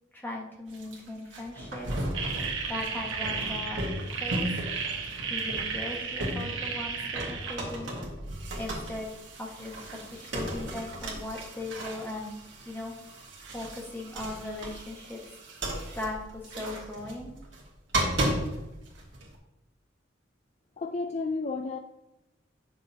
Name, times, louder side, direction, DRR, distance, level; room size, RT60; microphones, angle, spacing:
voice 1, 0.1-1.9 2.7-3.8 4.2-4.5 5.3-8.0 8.5-9.1 9.4-12.3 12.6-12.9 13.5-15.2 15.9-17.3, left 2 dB, 10° left, -2 dB, 1.5 m, -38 dB
sound 1, 0.7-6.8 7.2-19.4, right 1 dB, 65° right, 1.6 m, -35 dB
sound 2, 2.1-7.5, right 5 dB, 85° right, 1.2 m, -33 dB
voice 2, 20.8-21.8, left 3 dB, 35° left, 6 dB, 0.3 m, -31 dB
8.9 x 6.1 x 2.8 m, 0.96 s
head